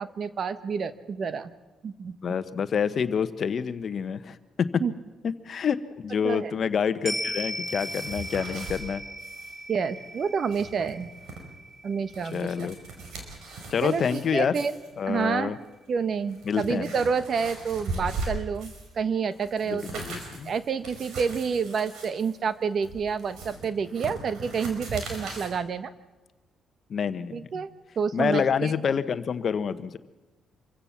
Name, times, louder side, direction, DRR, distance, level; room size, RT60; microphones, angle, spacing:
voice 1, 0.0-1.5 1.8-2.2 4.8-4.9 6.2-6.5 9.7-11.1 11.8-12.7 13.8-14.7 15.1-15.5 15.9-20.0 20.4-25.9 27.3-27.7 28.0-28.7, right 6 dB, 50° right, 13 dB, 1.2 m, -29 dB
voice 2, 2.2-4.7 5.5-5.8 6.0-9.0 12.3-12.7 13.7-14.5 15.0-15.6 16.5-16.9 19.7-20.5 26.9-27.6 28.1-30.0, left 7 dB, 55° left, 12 dB, 1.1 m, -27 dB
sound 1, 7.1-15.6 16.0-16.1, equal, 10° right, 5.0 m, -39 dB
sound 2, 7.3-8.8 9.2-9.5 9.8-9.9 10.3-11.4 11.9-14.2 14.5-14.9 15.6-15.7 16.2-18.9 19.3-25.5, right 2 dB, 80° right, 4.9 m, -39 dB
26.0 x 16.0 x 7.3 m, 1.2 s
cardioid pair, 90°, 0 cm